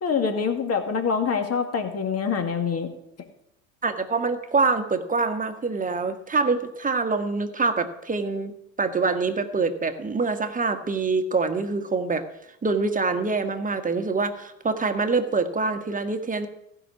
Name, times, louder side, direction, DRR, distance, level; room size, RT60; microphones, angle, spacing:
voice 1, 0.0-2.9, left 6 dB, 40° left, 6 dB, 2.2 m, -25 dB
voice 2, 3.8-8.5 8.8-12.2 12.6-16.5, right 4 dB, 20° right, 7 dB, 1.5 m, -25 dB
15.0 x 5.9 x 8.3 m, 0.81 s
hypercardioid pair, 70°, 39 cm